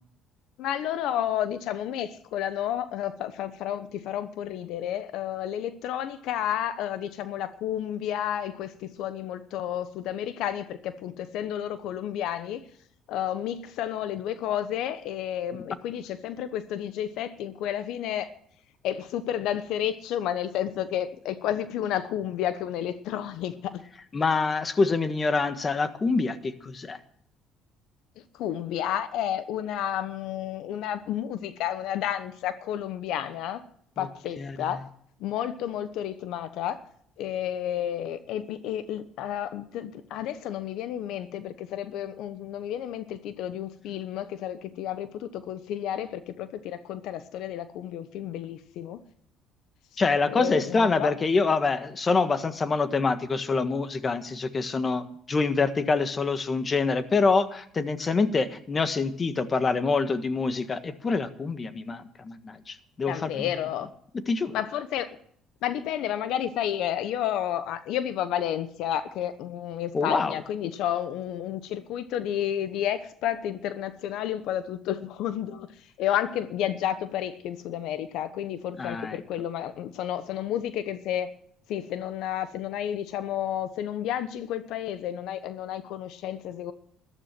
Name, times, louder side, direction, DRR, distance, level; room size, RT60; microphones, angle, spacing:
voice 1, 0.6-12.6 13.1-18.3 18.8-23.8 28.2-33.6 34.0-34.9 35.2-36.8 37.2-49.0 50.3-51.1 63.1-63.9 64.5-65.2 65.6-75.7 76.0-81.3 81.7-86.7, left 10 dB, 75° left, 1.0 m, -31 dB
voice 2, 24.1-27.0 34.0-34.1 34.4-34.7 50.0-63.5 64.3-64.6 69.9-70.3 78.8-79.2, left 4 dB, 30° left, 1.5 m, -26 dB
14.0 x 12.5 x 6.1 m
supercardioid pair, 90°, 0 cm